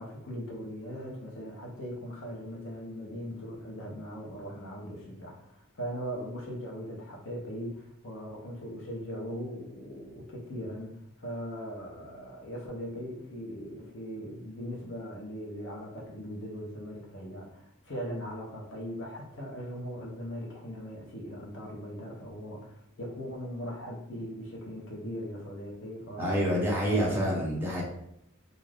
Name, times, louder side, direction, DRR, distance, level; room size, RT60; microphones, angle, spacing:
voice 1, 0.0-26.5 26.9-27.1, equal, 60° left, -2 dB, 0.8 m, -39 dB
voice 2, 26.2-27.8, equal, 10° right, -5 dB, 0.8 m, -27 dB
2.6 x 2.3 x 3.3 m, 0.76 s
head